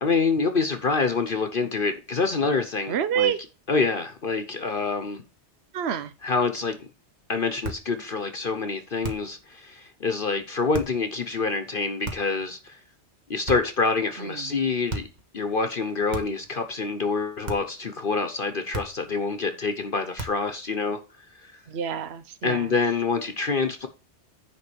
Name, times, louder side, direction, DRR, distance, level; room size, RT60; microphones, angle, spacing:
voice 1, 0.0-3.3 3.7-5.2 6.2-6.9 7.3-12.8 13.3-15.1 15.3-21.5 22.4-23.9, left 4 dB, 50° left, 1.2 m, -26 dB
voice 2, 2.9-3.4 5.7-6.1 14.2-14.5 21.7-22.7, right 8 dB, 65° right, 1.0 m, -28 dB
sound 1, 7.6-7.9 9.0-9.4 10.7-11.0 12.0-12.4 13.4-13.9 14.9-15.2 16.1-16.5 17.4-17.8 18.7-19.1 20.2-20.5, right 2 dB, 40° right, 1.8 m, -35 dB
10.0 x 3.9 x 6.9 m
omnidirectional pair, 1.2 m